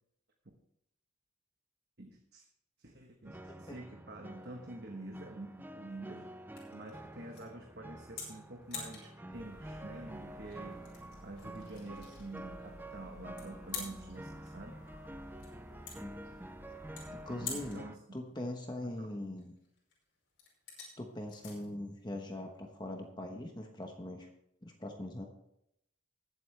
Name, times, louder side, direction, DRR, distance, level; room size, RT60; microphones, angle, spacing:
voice 1, 2.0-2.5 2.8-6.3 6.7-14.8 17.4-18.0 18.8-19.1, right 2 dB, 55° right, 2 dB, 1.2 m, -48 dB
sound 1, 3.2-18.0, right 1 dB, 10° right, 0.5 m, -49 dB
sound 2, 4.3-23.1, left 5 dB, 65° left, 5.1 m, -50 dB
sound 3, 9.3-17.7, equal, 85° left, 4.1 m, -55 dB
voice 2, 17.3-17.8 18.1-19.5 21.0-24.3 24.6-25.3, left 1 dB, 20° left, 3 dB, 1.1 m, -41 dB
19.5 x 8.0 x 3.3 m, 0.76 s
head